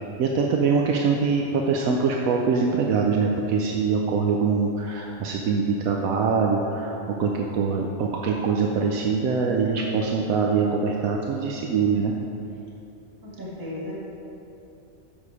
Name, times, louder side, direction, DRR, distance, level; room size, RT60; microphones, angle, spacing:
voice 1, 0.2-12.1, right 5 dB, 75° right, 0 dB, 1.0 m, -23 dB
voice 2, 13.2-13.9, left 1 dB, 15° right, -7 dB, 1.6 m, -35 dB
7.4 x 6.5 x 4.8 m, 2.9 s
omnidirectional pair, 1.5 m